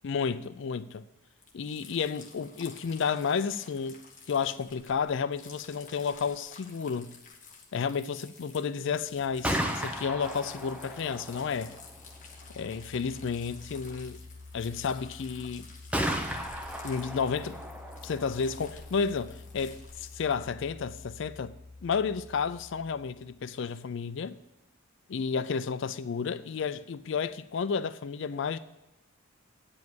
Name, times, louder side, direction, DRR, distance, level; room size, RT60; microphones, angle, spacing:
voice 1, 0.0-1.0 1.5-4.0 4.3-7.1 7.7-11.8 12.5-14.2 14.5-15.7 16.8-17.6 18.0-21.5 21.8-24.4 25.1-28.6, left 6 dB, 60° left, 0.4 m, -31 dB
sound 1, 1.4-20.4, left 5 dB, 35° left, 1.4 m, -52 dB
Gunshot gunfire, 9.3-23.0, equal, 5° right, 0.8 m, -38 dB
9.3 x 5.4 x 7.8 m
head